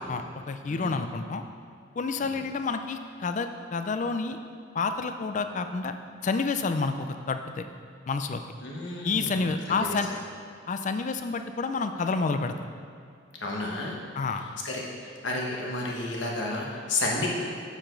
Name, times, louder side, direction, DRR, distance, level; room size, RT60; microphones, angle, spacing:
voice 1, 0.1-1.4 2.0-4.4 4.7-5.9 6.2-7.7 8.1-8.4 9.0-10.1 10.7-12.5 14.2-14.4, left 4 dB, 40° left, 8 dB, 0.4 m, -29 dB
voice 2, 0.7-1.0 8.6-10.0 13.4-14.0 14.6-17.3, left 2 dB, 60° left, -2 dB, 1.3 m, -32 dB
7.1 x 6.7 x 3.8 m, 2.4 s
head